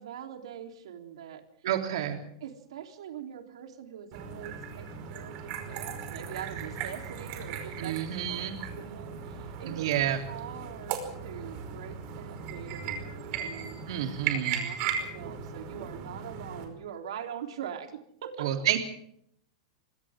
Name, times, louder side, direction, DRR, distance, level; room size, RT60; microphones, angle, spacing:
voice 1, 0.0-1.4 2.4-9.9 10.3-13.8 14.3-18.5, right 9 dB, 85° right, 4 dB, 3.7 m, -43 dB
voice 2, 1.6-2.2 7.8-8.5 9.7-10.2 13.9-14.6 18.4-18.8, right 10 dB, 60° right, 4 dB, 3.4 m, -29 dB
sound 1, 4.1-16.6, right 7 dB, 35° right, 5.1 m, -37 dB
28.0 x 25.0 x 3.8 m, 0.68 s
supercardioid pair, 175°, 3 cm